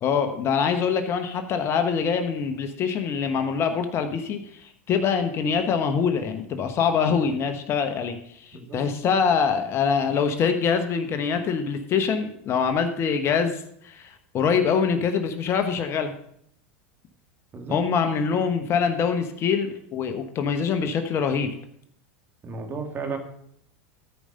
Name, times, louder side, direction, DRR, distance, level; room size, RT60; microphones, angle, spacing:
voice 1, 0.0-16.1 17.7-21.5, left 6 dB, 40° left, 7 dB, 1.1 m, -24 dB
voice 2, 8.5-8.8 17.5-17.8 22.4-23.2, right 4 dB, 30° right, 4 dB, 2.1 m, -33 dB
13.5 x 5.0 x 5.5 m, 0.69 s
hypercardioid pair, 100°, 7 cm